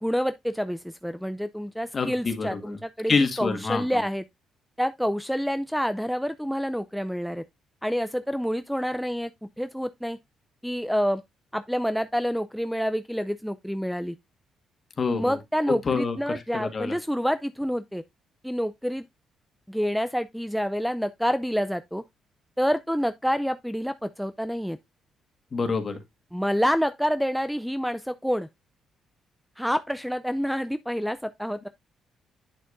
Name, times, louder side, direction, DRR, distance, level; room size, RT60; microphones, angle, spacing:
voice 1, 0.0-4.2 4.8-7.4 7.8-9.3 9.6-10.2 10.6-11.2 11.5-14.2 15.1-18.0 18.4-19.0 19.7-22.0 22.6-24.8 26.3-28.5 29.6-31.7, equal, ahead, 0.4 m, -28 dB
voice 2, 1.9-2.8 3.1-4.0 15.0-15.4 15.7-17.0 25.5-26.0, left 4 dB, 40° left, 1.7 m, -27 dB
8.8 x 6.5 x 2.5 m
cardioid pair, 90°, 0 cm